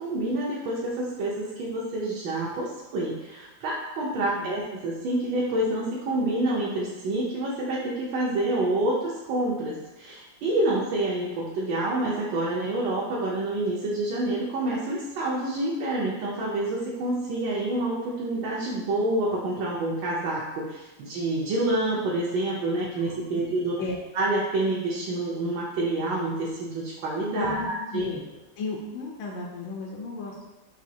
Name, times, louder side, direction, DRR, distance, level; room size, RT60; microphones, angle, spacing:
voice 1, 0.0-23.8 24.1-28.1, right 2 dB, 80° right, -5 dB, 1.4 m, -28 dB
voice 2, 4.2-4.6 22.9-23.0 23.8-24.0 27.3-28.2 28.6-30.5, left 3 dB, 80° left, -2 dB, 1.3 m, -34 dB
5.1 x 2.7 x 2.6 m, 1.1 s
omnidirectional pair, 2.0 m